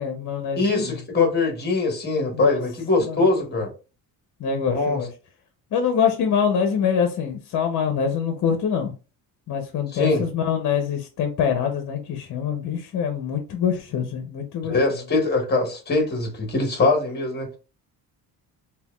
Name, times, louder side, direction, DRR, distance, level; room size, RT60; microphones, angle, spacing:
voice 1, 0.0-1.0 2.3-2.6 3.0-3.3 4.4-5.1 5.7-8.9 9.5-15.0, left 7 dB, 50° left, 0.7 m, -25 dB
voice 2, 0.6-3.7 4.7-5.0 9.9-10.2 14.6-17.5, left 3 dB, 25° left, 1.2 m, -22 dB
5.5 x 2.3 x 2.3 m
cardioid pair, 155°, 38 cm